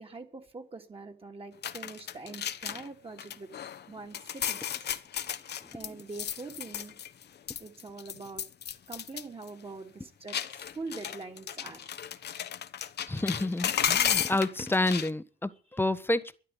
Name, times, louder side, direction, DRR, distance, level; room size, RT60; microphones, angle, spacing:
voice 1, 0.0-3.5 3.9-4.9 5.2-7.0 7.6-8.4 8.9-11.9, right 3 dB, 30° right, 3.1 m, -44 dB
sound 1, 1.6-2.9 3.2-3.8 4.1-7.2 7.5-9.2 9.5-9.6 10.3-15.1, left 9 dB, 55° left, 1.2 m, -33 dB
voice 2, 5.6-6.0 13.1-16.4, left 2 dB, 10° left, 1.4 m, -29 dB
12.5 x 10.5 x 9.9 m
cardioid pair, 90°, 20 cm